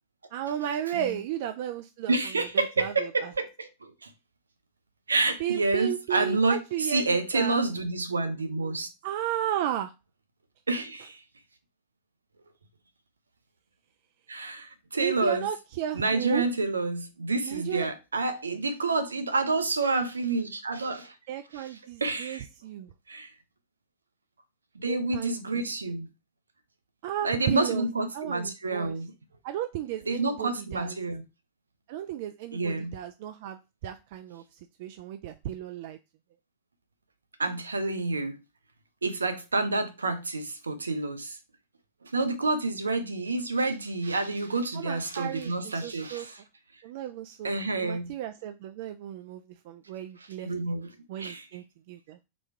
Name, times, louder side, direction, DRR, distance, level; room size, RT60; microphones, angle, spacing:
voice 1, 0.3-3.3 5.4-7.6 9.0-9.9 15.0-16.4 17.4-17.9 21.3-22.9 24.9-25.7 27.0-29.0 29.4-31.0 31.9-36.0 44.7-46.3 46.8-50.5 51.1-52.2, right 11 dB, 50° right, 0.3 m, -34 dB
voice 2, 2.1-4.1 5.1-8.9 10.7-11.2 14.3-15.5 15.9-21.1 21.5-21.6 22.0-22.4 23.1-23.3 24.8-26.1 27.2-29.1 30.1-31.2 32.5-33.0 37.4-38.4 39.0-41.4 42.1-46.4 47.4-48.1 50.4-50.9 51.2-51.4, right 3 dB, 75° right, 0.7 m, -28 dB
4.2 x 2.3 x 4.4 m
figure-of-eight pair, 90°, 0 cm